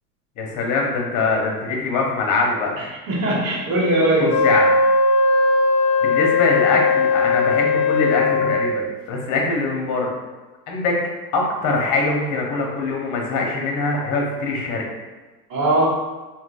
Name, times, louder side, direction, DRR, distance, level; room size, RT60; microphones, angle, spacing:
voice 1, 0.4-2.7 4.2-4.7 6.0-10.1 10.7-10.9 11.3-14.8, left 3 dB, 35° left, 0 dB, 0.9 m, -23 dB
voice 2, 2.8-4.4 15.5-15.9, right 1 dB, 55° right, -5 dB, 1.5 m, -20 dB
Wind instrument woodwind instrument, 4.3-8.9, left 3 dB, 65° left, 0.6 m, -18 dB
3.8 x 2.8 x 2.5 m, 1.2 s
supercardioid pair, 120°, 49 cm